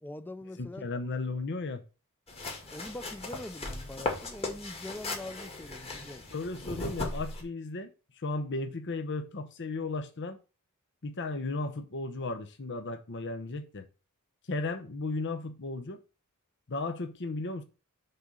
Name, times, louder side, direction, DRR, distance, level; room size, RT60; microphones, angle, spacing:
voice 1, 0.0-0.9 2.7-6.2, left 1 dB, 10° left, 0.6 m, -43 dB
voice 2, 0.6-1.8 6.3-10.4 11.0-13.9 14.5-16.0 16.7-17.6, left 3 dB, 55° left, 0.8 m, -35 dB
sound 1, 2.3-7.4, left 2 dB, 25° left, 2.0 m, -37 dB
6.8 x 3.9 x 6.3 m
head